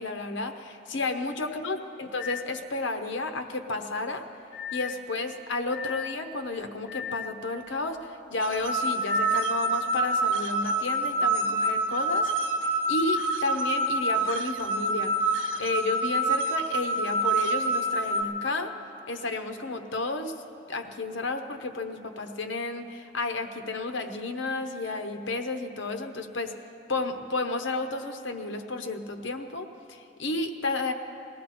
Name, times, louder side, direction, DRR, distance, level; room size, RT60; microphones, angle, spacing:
voice 1, 0.0-4.3 4.7-12.3 12.6-15.1 15.6-18.7 19.1-20.3 20.7-26.5 26.9-30.9, left 3 dB, 70° left, 6 dB, 0.9 m, -32 dB
sound 1, 2.2-2.5 4.5-5.1 5.7-6.2 6.9-7.4 9.0-9.5, left 9 dB, 45° left, 0.4 m, -37 dB
sound 2, 8.4-18.2, right 2 dB, 80° right, 0.8 m, -27 dB
20.0 x 15.0 x 4.3 m, 2.8 s
head